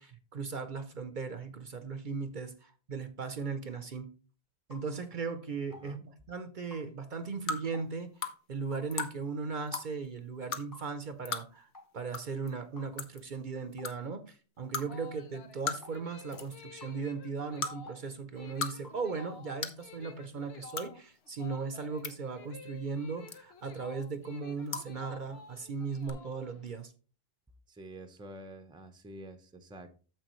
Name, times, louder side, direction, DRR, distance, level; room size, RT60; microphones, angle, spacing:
voice 1, 0.0-4.1 4.7-26.9, right 4 dB, 50° right, 0.8 m, -38 dB
sound 1, 4.7-4.9 5.7-5.9 6.7-6.9 7.7-7.9 8.7-8.9 9.7-9.9 10.7-10.9 11.7-11.9 12.8-13.0 13.8-13.9 14.8-14.9 15.8-16.0 16.8-17.0 17.9-18.0 18.8-19.0, left 3 dB, 20° left, 1.1 m, -53 dB
sound 2, 7.5-7.6 8.2-8.3 8.9-9.1 9.7-9.9 10.5-10.6 11.3-11.4 12.1-12.2 12.5-12.6 13.0-13.2 13.8-13.9 14.7-14.9 15.7-16.0 16.3-16.6 17.6-17.7 18.4-18.7 19.0-19.1 19.6-19.8 20.7-20.9 21.7-22.1 23.3-23.6 24.7-24.9 26.0-26.1, left 5 dB, 55° left, 0.9 m, -35 dB
sound 3, 14.6-26.8, left 5 dB, 90° left, 1.1 m, -52 dB
voice 2, 27.7-30.0, right 1 dB, 5° right, 0.7 m, -48 dB
9.1 x 7.2 x 3.0 m
omnidirectional pair, 1.1 m